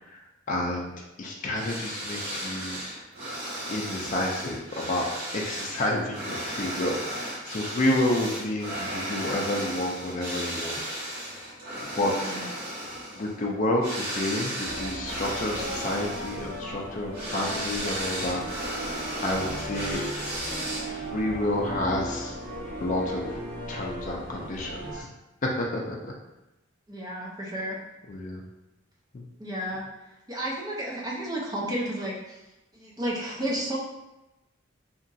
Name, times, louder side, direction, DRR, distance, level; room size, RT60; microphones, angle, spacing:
voice 1, 0.5-0.9 1.2-2.8 3.7-5.1 5.3-11.0 12.0-12.3 13.2-18.4 19.2-20.0 20.9-22.3 22.8-23.2 23.7-25.1 25.4-26.1 28.1-28.4 29.1-29.3, left 1 dB, 40° left, -1 dB, 0.4 m, -29 dB
sound 1, 1.5-21.1, right 1 dB, 50° right, 1.0 m, -35 dB
sound 2, 14.6-25.0, equal, 75° right, 1.0 m, -37 dB
voice 2, 26.9-27.8 29.4-29.8 30.3-32.4 32.7-33.8, right 1 dB, 20° right, -4 dB, 0.5 m, -32 dB
2.9 x 2.4 x 2.6 m, 0.99 s
head